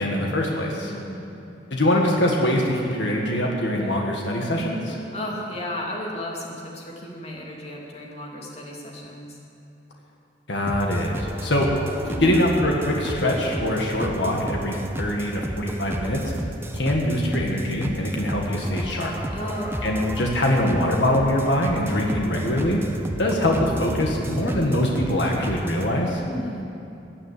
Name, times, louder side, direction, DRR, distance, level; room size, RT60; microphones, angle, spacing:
voice 1, 0.0-0.9 1.7-5.0 10.5-11.7 12.2-16.2 16.7-19.2 19.8-22.9 23.2-26.2, left 1 dB, 75° left, 0 dB, 1.9 m, -23 dB
voice 2, 0.8-1.3 5.1-9.4 12.0-12.4 19.3-19.9 26.3-26.6, left 1 dB, 35° left, -2 dB, 2.6 m, -33 dB
sound 1, 10.7-25.9, equal, 15° right, 0.9 m, -32 dB
16.5 x 9.9 x 8.6 m, 2.8 s
head